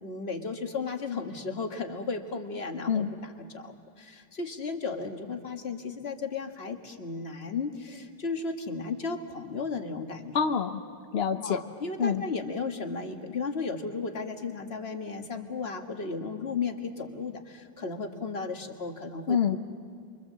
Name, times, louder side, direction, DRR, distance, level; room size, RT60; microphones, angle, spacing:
voice 1, 0.0-10.4 11.4-19.6, left 4 dB, 35° left, 4 dB, 1.6 m, -35 dB
voice 2, 10.3-10.8 11.1-11.6 12.0-12.2 19.3-19.6, left 7 dB, 60° left, 6 dB, 0.6 m, -26 dB
28.5 x 24.0 x 7.4 m, 2.2 s
omnidirectional pair, 2.2 m